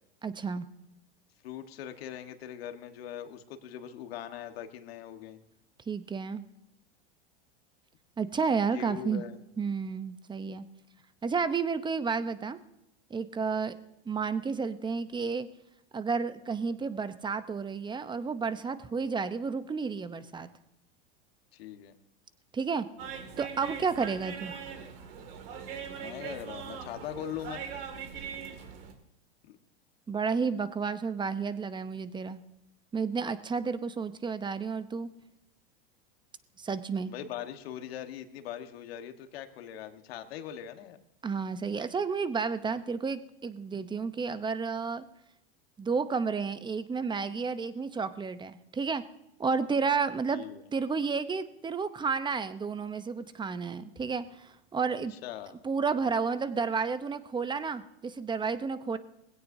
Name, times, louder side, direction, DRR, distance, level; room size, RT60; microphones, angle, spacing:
voice 1, 0.2-0.7 5.9-6.4 8.2-9.2 9.6-10.7 11.2-12.6 13.1-13.7 14.1-15.5 15.9-20.5 22.5-22.9 23.4-24.5 30.1-32.4 32.9-35.1 36.6-37.1 41.2-45.0 45.8-49.0 49.4-50.4 50.7-55.1 55.6-59.0, right 5 dB, 15° right, 12 dB, 0.8 m, -31 dB
voice 2, 1.4-5.4 8.7-9.4 21.5-21.9 26.0-27.6 28.1-28.3 29.4-29.6 37.0-41.0 50.3-50.7 55.1-55.5, left 10 dB, 75° left, 7 dB, 1.5 m, -41 dB
sound 1, 23.0-28.9, right 7 dB, 65° right, 2.3 m, -41 dB
20.5 x 16.5 x 2.7 m, 0.87 s
hypercardioid pair, 110°, 30 cm